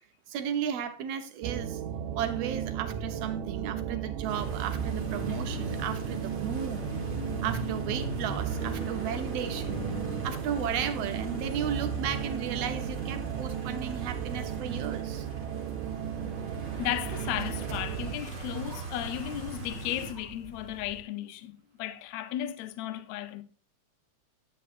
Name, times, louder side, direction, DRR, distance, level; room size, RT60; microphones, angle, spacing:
voice 1, 0.3-1.8 2.1-6.9 7.4-9.9 10.2-15.3, right 8 dB, 65° right, 1.8 m, -34 dB
sound 1, 1.4-18.2, right 9 dB, 90° right, 2.2 m, -35 dB
sound 2, 4.3-20.1, right 2 dB, 40° right, 2.2 m, -39 dB
sound 3, 15.9-21.0, right 1 dB, 15° right, 1.9 m, -49 dB
voice 2, 16.8-21.5 21.8-23.4, left 12 dB, 75° left, 1.9 m, -35 dB
11.0 x 8.8 x 2.5 m
omnidirectional pair, 3.5 m